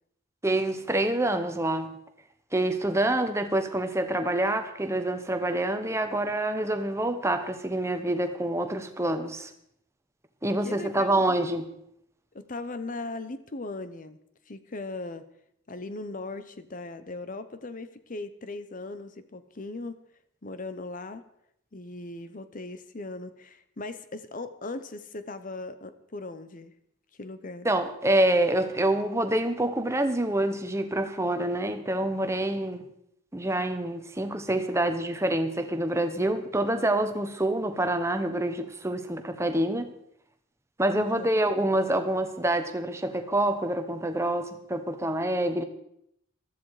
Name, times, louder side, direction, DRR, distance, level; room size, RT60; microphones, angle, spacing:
voice 1, 0.4-1.9 2.5-9.5 10.4-11.7 27.6-32.8 33.3-39.9 40.8-45.6, right 1 dB, 15° right, 8 dB, 1.2 m, -26 dB
voice 2, 10.6-11.1 12.3-14.2 14.5-15.3 15.7-20.0 20.4-21.2 21.7-26.7 27.2-27.7 40.9-41.3, left 2 dB, 40° left, 11 dB, 0.8 m, -38 dB
15.0 x 13.5 x 4.9 m, 0.74 s
head